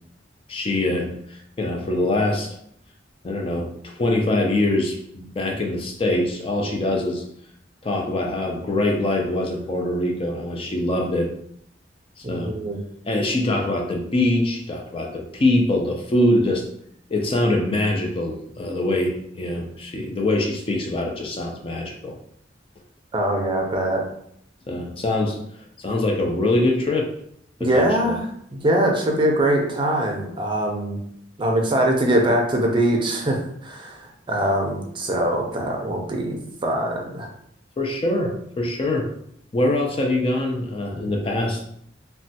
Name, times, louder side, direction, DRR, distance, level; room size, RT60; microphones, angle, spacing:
voice 1, 0.5-2.5 3.2-7.2 7.8-11.3 12.2-12.6 13.0-16.6 17.1-22.1 24.7-25.4 25.8-27.1 27.6-28.2 37.8-39.1 39.5-41.6, left 1 dB, 30° left, 1 dB, 0.4 m, -23 dB
voice 2, 12.3-12.8 23.1-24.0 27.6-28.3 28.5-31.0 31.4-37.3, right 1 dB, 30° right, 1 dB, 0.5 m, -22 dB
3.1 x 2.2 x 2.7 m, 0.69 s
head